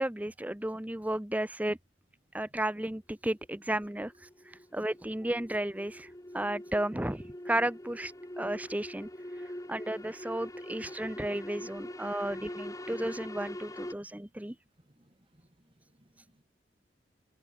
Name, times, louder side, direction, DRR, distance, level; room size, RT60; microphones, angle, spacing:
voice 1, 0.0-1.8 2.3-4.1 4.7-6.1 6.3-9.1 9.7-14.5, right 1 dB, 10° right, 0.8 m, -33 dB
sound 1, 3.5-13.9, left 1 dB, 20° left, 4.0 m, -43 dB
voice 2, 13.9-16.4, equal, 30° right, 3.0 m, -65 dB
head